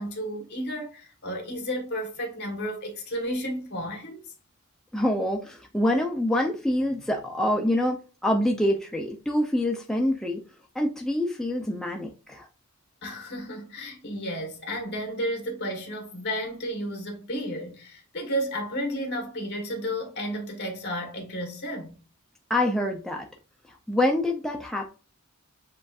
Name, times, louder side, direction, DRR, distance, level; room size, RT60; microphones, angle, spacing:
voice 1, 0.0-4.2 13.0-21.9, equal, 50° left, 1.5 m, -32 dB
voice 2, 4.9-8.0 8.2-10.4 10.7-12.5 22.5-23.3 23.7-24.9, left 1 dB, ahead, 0.5 m, -26 dB
7.4 x 2.5 x 2.4 m
head